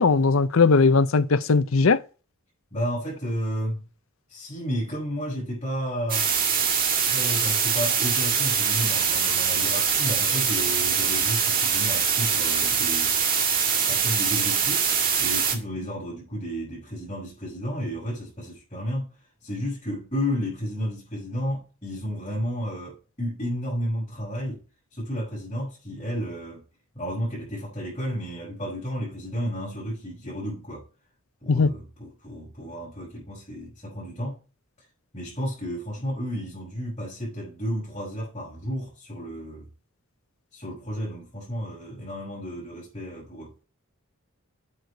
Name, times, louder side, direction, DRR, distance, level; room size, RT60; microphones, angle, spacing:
voice 1, 0.0-2.0 31.5-31.7, left 4 dB, 70° left, 0.6 m, -19 dB
voice 2, 2.7-3.8 4.3-6.3 7.0-13.1 13.9-14.9 15.2-19.1 19.4-24.6 24.9-26.6 26.9-30.8 31.4-34.4 35.1-39.7 40.5-43.5, equal, 25° left, 5.4 m, -32 dB
sound 1, 6.1-15.6, right 6 dB, 40° right, 1.8 m, -23 dB
8.6 x 6.7 x 4.7 m
head